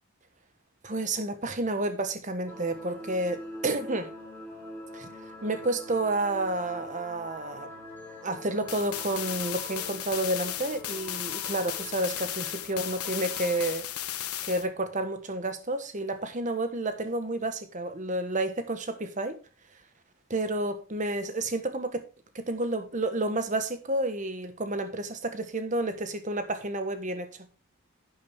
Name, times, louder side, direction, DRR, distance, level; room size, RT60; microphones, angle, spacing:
voice 1, 0.8-4.1 4.9-5.1 5.4-7.7 8.2-13.8 14.4-19.4 20.3-22.0 22.3-27.3, right 2 dB, 35° right, 1.2 m, -30 dB
sound 1, 2.5-13.7, equal, 10° left, 3.4 m, -45 dB
sound 2, 8.7-14.7, left 12 dB, 90° left, 1.0 m, -35 dB
11.0 x 7.6 x 3.5 m
head